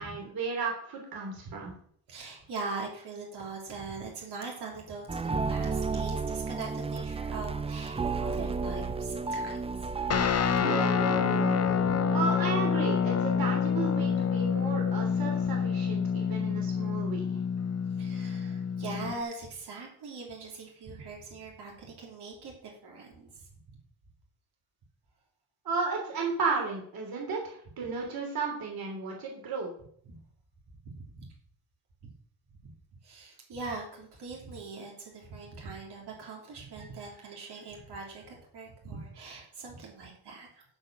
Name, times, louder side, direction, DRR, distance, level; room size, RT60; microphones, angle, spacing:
voice 1, 0.0-1.7 12.1-17.4 25.6-29.7, right 4 dB, 60° right, -1 dB, 3.1 m, -34 dB
voice 2, 2.1-9.9 10.9-11.2 11.6-12.0 18.0-23.4 30.0-30.1 30.8-31.3 32.6-32.7 33.0-40.6, right 3 dB, 75° right, -2 dB, 3.2 m, -42 dB
sound 1, 5.1-15.5, right 4 dB, 15° right, 0.4 m, -34 dB
Guitar, 10.1-19.2, left 7 dB, 40° left, 0.8 m, -27 dB
13.0 x 5.0 x 6.2 m, 0.62 s
wide cardioid pair, 150°, 40 cm